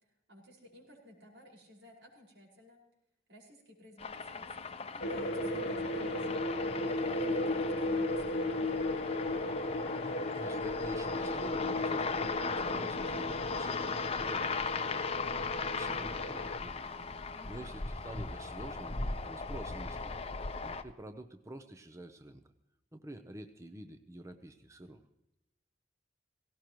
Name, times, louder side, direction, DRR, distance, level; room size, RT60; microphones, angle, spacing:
voice 1, 0.3-2.8 3.3-6.4 6.8-8.9 17.3-17.7, left 1 dB, 85° right, -2 dB, 5.3 m, -55 dB
sound 1, 4.0-20.8, left 4 dB, 35° left, 0.8 m, -38 dB
sound 2, 5.0-16.6, left 1 dB, 60° left, 0.9 m, -35 dB
voice 2, 10.0-16.8 17.5-19.0 19.2-20.1 20.6-22.4 22.9-25.0, right 1 dB, 15° right, 7 dB, 0.7 m, -48 dB
18.0 x 17.5 x 3.1 m, 0.86 s
head